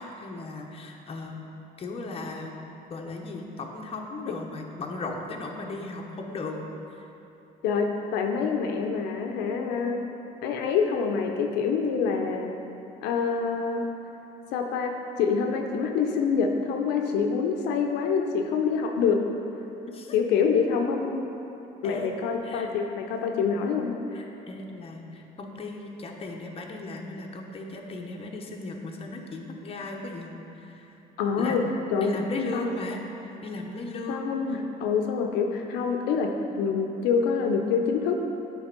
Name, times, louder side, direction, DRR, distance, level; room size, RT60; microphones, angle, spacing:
voice 1, 0.0-1.4 1.8-2.6 2.9-6.6 6.9-7.1 19.9-20.1 21.8-22.2 22.4-22.7 24.1-31.0 31.4-31.6 32.0-34.6, left 2 dB, 35° left, 1 dB, 0.8 m, -36 dB
voice 2, 7.6-10.0 10.4-12.5 13.0-13.9 14.5-19.3 20.1-21.3 21.8-24.0 31.2-31.6 31.9-32.2 32.5-32.7 34.1-38.2, left 5 dB, 90° left, 3 dB, 0.6 m, -26 dB
8.6 x 3.4 x 5.2 m, 2.9 s
cardioid pair, 110°, 17 cm